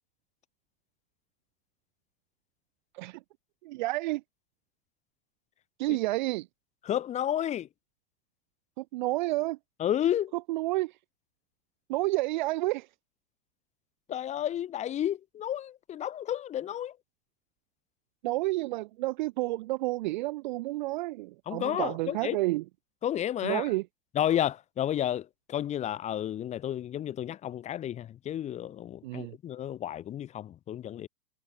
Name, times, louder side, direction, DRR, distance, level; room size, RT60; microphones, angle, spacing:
voice 1, 3.6-4.2 5.8-6.5 8.8-9.6 10.5-10.9 11.9-12.9 18.2-22.6 23.4-23.8 29.0-29.3, right 19 dB, 30° right, 0.9 m, -30 dB
voice 2, 6.8-7.7 9.8-10.3 14.1-17.0 21.5-22.4 23.0-23.7 24.2-31.1, left 11 dB, 15° left, 1.7 m, -31 dB
supercardioid pair, 170°, 47 cm